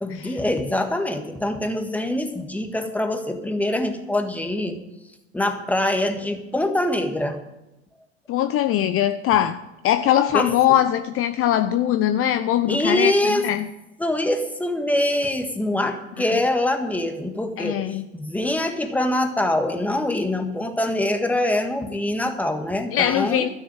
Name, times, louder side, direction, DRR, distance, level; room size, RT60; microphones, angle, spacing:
voice 1, 0.0-4.8 5.3-7.4 10.3-10.5 12.7-13.5 14.0-23.5, left 1 dB, 5° left, 1.6 m, -24 dB
voice 2, 8.3-13.7 16.3-16.4 17.6-18.1 22.9-23.5, left 11 dB, 40° left, 0.7 m, -21 dB
12.5 x 6.7 x 9.0 m
hypercardioid pair, 90°, 33 cm